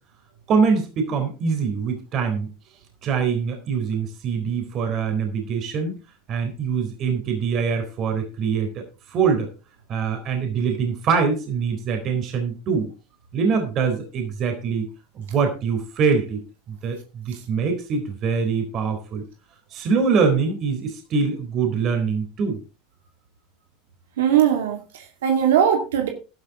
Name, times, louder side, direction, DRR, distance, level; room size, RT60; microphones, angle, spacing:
voice 1, 0.5-2.5 3.0-6.0 6.3-8.8 9.1-9.5 9.9-12.9 13.3-14.9 15.3-16.4 16.8-19.2 19.7-22.6, right 5 dB, 45° right, 4 dB, 4.0 m, -23 dB
voice 2, 24.2-26.1, right 9 dB, 80° right, 4 dB, 2.4 m, -20 dB
12.0 x 12.0 x 3.8 m, 0.32 s
hypercardioid pair, 100°, 0 cm